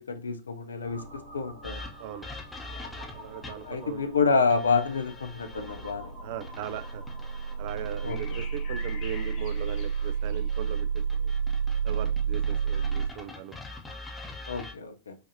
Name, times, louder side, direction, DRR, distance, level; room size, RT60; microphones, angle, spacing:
voice 1, 0.0-1.8 3.6-6.1 8.0-8.2 14.5-15.2, left 4 dB, 70° left, 0.4 m, -28 dB
sound 1, 0.8-13.1, right 6 dB, 75° right, 1.8 m, -32 dB
sound 2, 1.6-3.8 4.5-5.9 6.4-10.1 10.5-14.7, left 2 dB, 10° left, 0.8 m, -44 dB
voice 2, 3.1-4.1 6.2-7.0 7.6-11.3 11.8-13.5, right 10 dB, 50° right, 0.3 m, -39 dB
sound 3, 7.9-10.7, left 5 dB, 45° left, 0.7 m, -46 dB
5.0 x 2.5 x 2.7 m
figure-of-eight pair, 90°, 0 cm